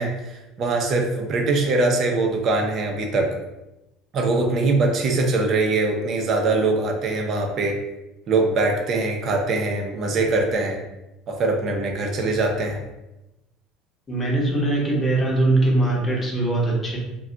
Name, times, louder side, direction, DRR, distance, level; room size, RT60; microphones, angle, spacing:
voice 1, 0.0-3.3 4.1-7.8 8.3-10.8 11.3-12.8, right 3 dB, 40° right, 2 dB, 0.6 m, -22 dB
voice 2, 14.1-17.0, right 2 dB, 20° left, -4 dB, 0.9 m, -21 dB
2.3 x 2.2 x 3.8 m, 0.96 s
cardioid pair, 135°, 0 cm